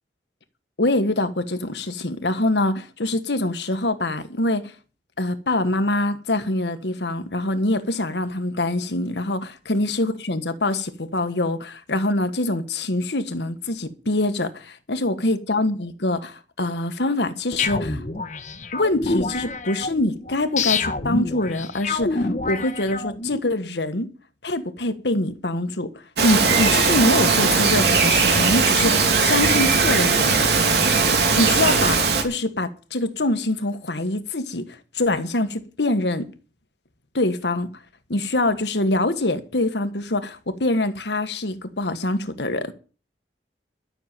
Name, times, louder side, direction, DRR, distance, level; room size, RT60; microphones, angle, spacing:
voice 1, 0.8-4.7 5.2-18.0 18.7-24.1 24.4-25.9 26.2-30.5 31.3-34.6 34.9-36.3 37.1-37.7 38.1-42.7, left 2 dB, 80° left, 1.5 m, -24 dB
sound 1, 17.6-23.4, left 3 dB, 45° left, 1.1 m, -27 dB
Bird vocalization bird call bird song, 26.2-32.2, right 4 dB, 75° right, 2.7 m, -19 dB
12.5 x 6.8 x 9.1 m
head